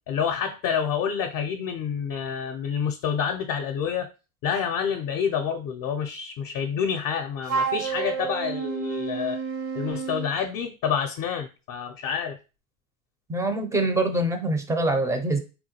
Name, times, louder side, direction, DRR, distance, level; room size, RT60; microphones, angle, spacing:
voice 1, 0.1-4.1 4.4-9.4 9.7-12.4, left 7 dB, 45° left, 0.5 m, -28 dB
Wind instrument woodwind instrument, 7.5-10.3, right 6 dB, 85° right, 0.7 m, -30 dB
voice 2, 13.3-15.4, right 1 dB, 10° right, 0.4 m, -24 dB
3.6 x 2.2 x 2.8 m
hypercardioid pair, 90°, 42 cm